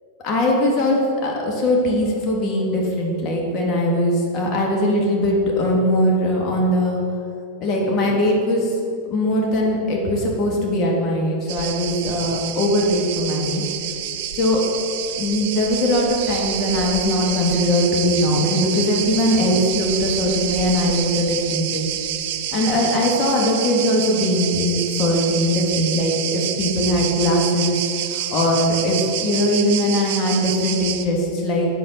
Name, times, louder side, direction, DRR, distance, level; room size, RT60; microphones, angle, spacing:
voice 1, 0.2-7.0 7.6-8.7 9.1-13.6 14.3-14.6 15.2-21.9 22.5-27.8 28.1-31.7, left 1 dB, 35° left, -1 dB, 1.8 m, -20 dB
sound 1, 11.5-31.0, right 10 dB, 50° right, 0.5 m, -28 dB
8.6 x 7.7 x 4.2 m, 2.6 s
figure-of-eight pair, 90°, 0 cm